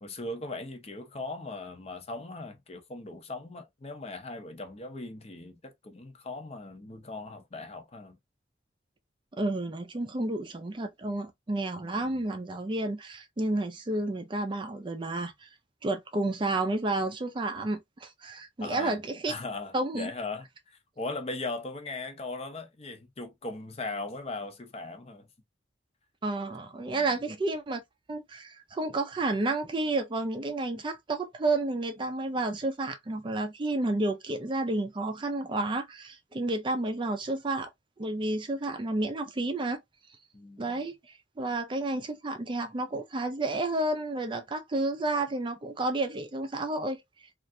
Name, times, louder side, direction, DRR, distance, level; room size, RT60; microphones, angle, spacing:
voice 1, 0.0-8.2 11.8-12.2 18.6-19.0 19.3-20.5 21.0-25.3 26.9-27.2 40.3-40.8, left 2 dB, 35° left, 0.6 m, -39 dB
voice 2, 9.4-15.5 15.8-19.3 19.7-20.1 26.2-27.8 28.1-37.7 38.0-39.8 40.6-41.0 41.4-47.0, right 2 dB, 25° right, 0.4 m, -31 dB
3.2 x 2.5 x 2.5 m
head